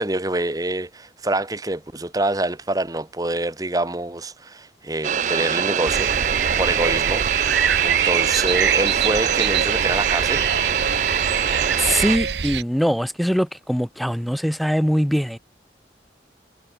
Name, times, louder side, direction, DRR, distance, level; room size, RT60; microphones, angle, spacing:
voice 1, 0.0-6.1 6.6-7.2 7.8-10.4, right 2 dB, 20° right, 1.2 m, -26 dB
sound 1, 5.0-12.2, right 8 dB, 45° right, 0.5 m, -23 dB
sound 2, 5.9-12.6, right 7 dB, 75° right, 0.9 m, -24 dB
voice 2, 11.8-15.4, equal, ahead, 2.0 m, -22 dB
head